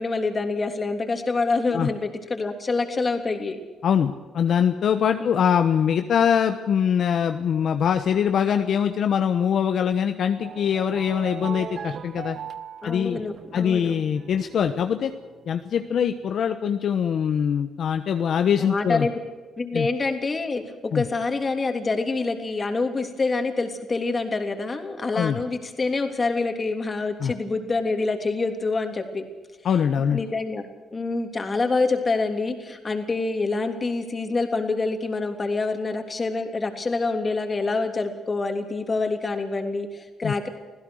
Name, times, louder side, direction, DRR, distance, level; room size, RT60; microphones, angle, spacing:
voice 1, 0.0-3.6 5.2-5.3 12.8-14.0 18.6-19.1 19.6-29.3 30.1-40.5, left 3 dB, 30° left, 5 dB, 3.2 m, -26 dB
voice 2, 3.8-12.4 12.8-13.2 13.5-15.1 15.5-19.1 19.7-19.9 20.9-21.0 25.1-25.4 27.2-27.3 29.6-30.2 40.2-40.3, left 8 dB, 65° left, 7 dB, 1.1 m, -23 dB
sound 1, 10.2-16.1, right 8 dB, 55° right, 1.0 m, -39 dB
25.5 x 16.0 x 6.5 m, 1.2 s
cardioid pair, 90°, 0 cm